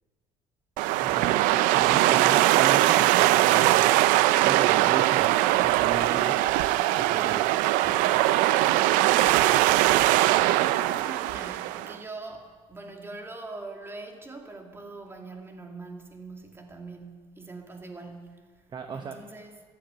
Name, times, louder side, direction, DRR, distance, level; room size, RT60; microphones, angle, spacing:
sound 1, 0.8-11.9, right 15 dB, 90° right, 0.5 m, -21 dB
voice 1, 1.0-4.0 4.4-6.4 7.0-7.5 18.7-19.2, right 5 dB, 35° right, 1.0 m, -36 dB
voice 2, 2.0-2.3 7.8-8.1 10.3-18.5 18.9-19.5, right 3 dB, 20° right, 2.5 m, -43 dB
14.5 x 11.0 x 9.0 m
cardioid pair, 115°, 13 cm